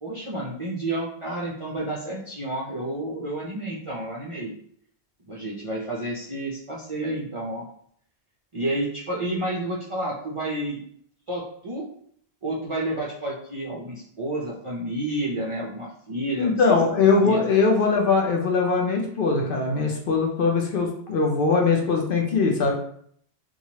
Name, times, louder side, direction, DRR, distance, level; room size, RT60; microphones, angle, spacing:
voice 1, 0.0-4.5 5.3-7.6 8.5-10.8 11.3-11.9 12.4-17.5, right 1 dB, 45° right, -5 dB, 0.4 m, -30 dB
voice 2, 16.4-22.7, left 4 dB, 60° left, 1 dB, 0.7 m, -21 dB
2.9 x 2.3 x 2.8 m, 0.63 s
omnidirectional pair, 1.1 m